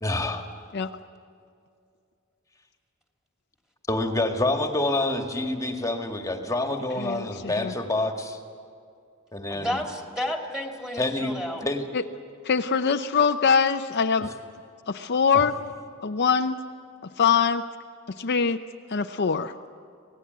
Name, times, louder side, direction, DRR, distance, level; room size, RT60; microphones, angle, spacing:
voice 1, 0.0-0.4 3.9-8.4 9.3-9.8 11.0-11.3 11.6-11.9, left 2 dB, 15° left, 4 dB, 1.8 m, -27 dB
voice 2, 7.0-7.7 11.9-12.0 12.4-14.3 14.9-15.6 16.0-16.6 17.2-17.6 18.2-18.6 18.9-19.5, left 6 dB, 50° left, 7 dB, 0.6 m, -23 dB
voice 3, 9.5-11.6, equal, ahead, 2 dB, 2.8 m, -31 dB
26.5 x 18.0 x 9.4 m, 2.4 s
head